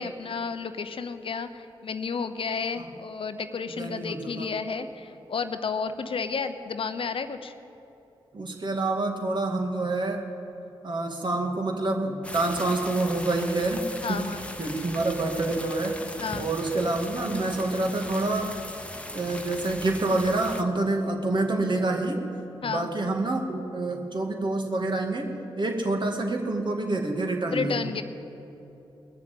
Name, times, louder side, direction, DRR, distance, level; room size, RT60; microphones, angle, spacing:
voice 1, 0.0-7.5 14.0-14.4 16.2-16.5 22.6-22.9 27.5-28.0, left 5 dB, 60° left, 10 dB, 0.8 m, -32 dB
voice 2, 3.8-4.5 8.3-10.2 10.8-14.2 14.6-16.0 16.3-18.5 19.1-22.3 22.6-27.8, right 2 dB, 50° right, 2 dB, 2.2 m, -27 dB
sound 1, 12.2-20.6, left 1 dB, 10° left, 1.2 m, -39 dB
20.0 x 6.8 x 8.5 m, 2.9 s
supercardioid pair, 45°, 10 cm